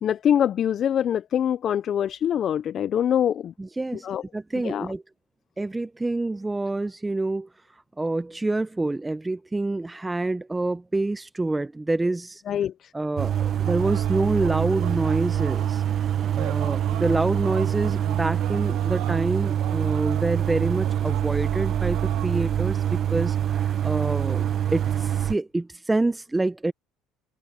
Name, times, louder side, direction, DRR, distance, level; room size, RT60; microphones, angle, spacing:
voice 1, 0.0-3.5 4.0-4.2 4.6-4.9 12.5-12.9, left 9 dB, 45° left, 0.4 m, -24 dB
voice 2, 3.6-4.1 4.3-5.0 5.6-12.4 12.9-15.8 16.3-26.7, right 2 dB, 10° right, 0.7 m, -27 dB
sound 1, 13.2-25.4, right 10 dB, 45° right, 0.9 m, -25 dB
sound 2, 13.7-22.4, right 18 dB, 75° right, 2.5 m, -41 dB
open air
supercardioid pair, 105°, 0 cm